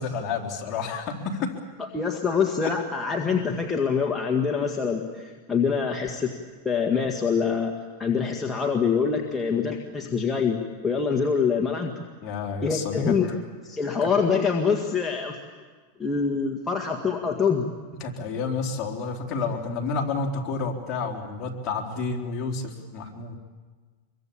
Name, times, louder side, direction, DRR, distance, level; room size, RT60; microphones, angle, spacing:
voice 1, 0.0-1.5 2.6-2.7 12.2-13.1 14.0-14.1 18.0-23.4, left 4 dB, 35° left, 1 dB, 3.8 m, -30 dB
voice 2, 1.9-6.3 6.7-7.7 8.0-11.9 12.6-15.4 16.0-17.7, left 5 dB, 15° left, 1 dB, 1.9 m, -25 dB
25.5 x 23.0 x 8.8 m, 1.4 s
supercardioid pair, 135°, 0 cm